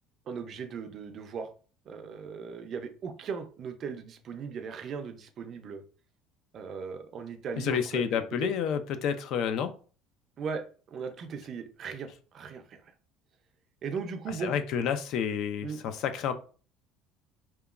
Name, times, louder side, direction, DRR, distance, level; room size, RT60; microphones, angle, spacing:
voice 1, 0.3-1.5 1.9-5.8 6.5-8.5 10.4-12.8 13.8-14.5 15.6-15.8, right 6 dB, 40° right, 0.4 m, -38 dB
voice 2, 7.6-9.7 14.3-16.3, left 8 dB, 55° left, 0.3 m, -30 dB
2.9 x 2.2 x 2.3 m
cardioid pair, 145°, 0 cm